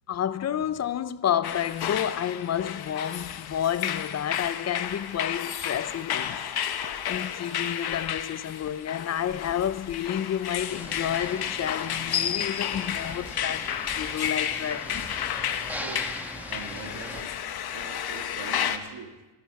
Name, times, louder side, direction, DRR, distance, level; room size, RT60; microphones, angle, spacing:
voice 1, 0.1-6.4 7.1-15.1, left 9 dB, 35° left, 0.5 m, -30 dB
sound 1, 1.4-18.8, left 9 dB, 50° left, 0.9 m, -32 dB
sound 2, 10.7-17.2, equal, 5° right, 1.2 m, -41 dB
voice 2, 15.8-16.1 16.5-17.4 17.7-19.2, right 4 dB, 55° right, 2.1 m, -42 dB
25.0 x 10.5 x 4.7 m
cardioid pair, 140°, 48 cm